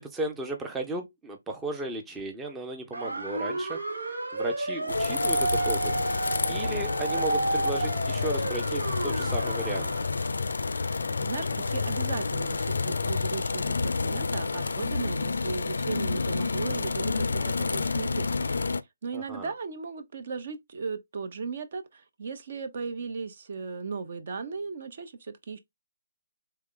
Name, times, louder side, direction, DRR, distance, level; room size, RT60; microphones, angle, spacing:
voice 1, 0.0-5.9 6.5-9.9 19.1-19.5, right 2 dB, 10° right, 0.6 m, -35 dB
sound 1, 2.9-10.1, right 2 dB, 90° right, 1.2 m, -31 dB
sound 2, 4.9-18.8, left 4 dB, 80° left, 0.4 m, -29 dB
voice 2, 10.7-18.3 19.0-25.6, right 4 dB, 50° right, 0.8 m, -36 dB
3.6 x 3.3 x 3.7 m
hypercardioid pair, 155°, 0 cm